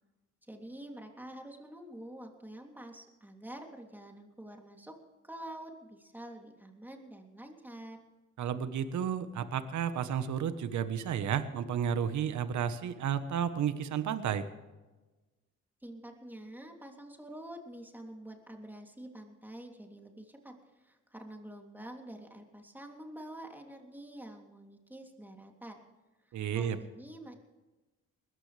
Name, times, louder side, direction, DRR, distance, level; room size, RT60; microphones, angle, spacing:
voice 1, 0.5-5.0 5.2-8.0 15.8-25.8 26.2-27.4, right 1 dB, 5° right, 2 dB, 3.1 m, -47 dB
voice 2, 8.4-14.4 26.3-26.8, right 8 dB, 70° right, 11 dB, 1.3 m, -32 dB
21.0 x 14.5 x 3.4 m, 1.2 s
cardioid pair, 90°, 30 cm